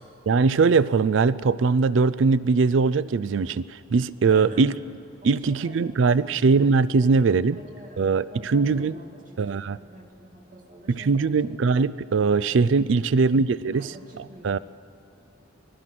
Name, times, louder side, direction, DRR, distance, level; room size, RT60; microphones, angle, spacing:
voice 1, 0.3-4.8 5.2-7.6 8.0-9.0 9.4-9.8 10.9-14.6, right 4 dB, 75° right, 17 dB, 0.4 m, -21 dB
voice 2, 4.3-4.6 5.2-6.0 7.0-8.0 8.3-9.1 9.3-11.3 12.9-13.2 13.7-14.6, equal, 45° right, 1 dB, 2.6 m, -45 dB
24.5 x 18.5 x 6.0 m, 2.3 s
head